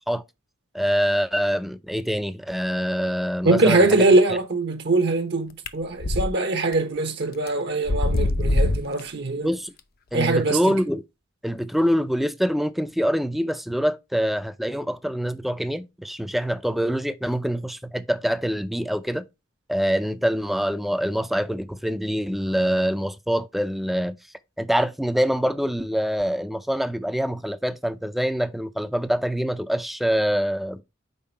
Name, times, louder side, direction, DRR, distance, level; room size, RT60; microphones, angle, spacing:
voice 1, 0.7-4.0 9.4-9.7 10.1-11.0 11.4-19.3 19.7-24.2 24.6-30.8, equal, ahead, 0.4 m, -25 dB
voice 2, 3.4-9.5 10.1-10.8, right 2 dB, 55° right, 0.9 m, -22 dB
sound 1, 5.7-6.3 6.7-6.8 7.5-7.6 7.8-9.0, left 1 dB, 45° left, 0.6 m, -22 dB
5.5 x 4.5 x 4.5 m
head